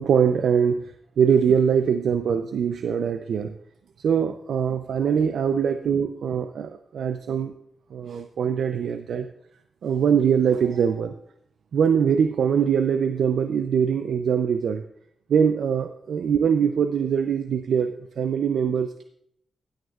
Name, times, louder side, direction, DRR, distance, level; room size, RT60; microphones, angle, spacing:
voice 1, 0.0-3.6 4.0-7.5 7.9-9.3 9.8-11.1 11.7-14.8 15.3-19.0, right 7 dB, 85° right, 8 dB, 0.5 m, -23 dB
15.5 x 9.3 x 2.4 m, 0.70 s
cardioid pair, 90°, 0 cm